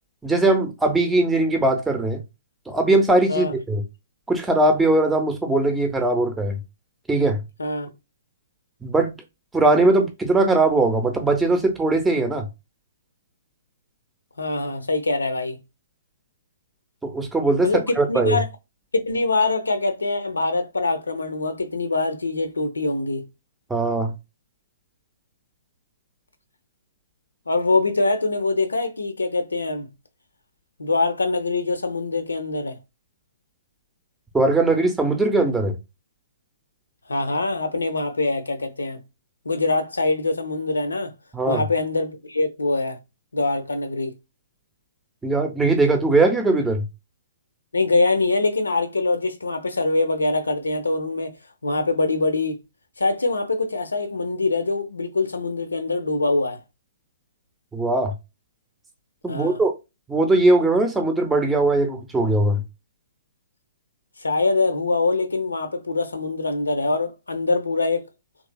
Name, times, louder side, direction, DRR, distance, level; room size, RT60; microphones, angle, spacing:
voice 1, 0.2-2.2 2.7-3.8 4.3-6.6 7.1-7.4 8.8-9.1 9.5-12.5 17.0-18.4 23.7-24.1 34.3-35.8 41.3-41.6 45.2-46.8 57.7-58.1 59.2-59.7 60.1-62.6, right 2 dB, 5° right, 0.6 m, -20 dB
voice 2, 14.4-15.6 17.6-17.8 18.1-18.5 18.9-23.2 27.5-29.9 30.8-32.8 37.1-39.0 39.4-41.1 41.5-43.0 43.3-44.1 47.7-51.3 51.6-52.6 53.0-56.6 59.3-59.6 64.2-68.1, left 3 dB, 70° left, 0.6 m, -23 dB
3.1 x 3.1 x 2.2 m
figure-of-eight pair, 120°, 0 cm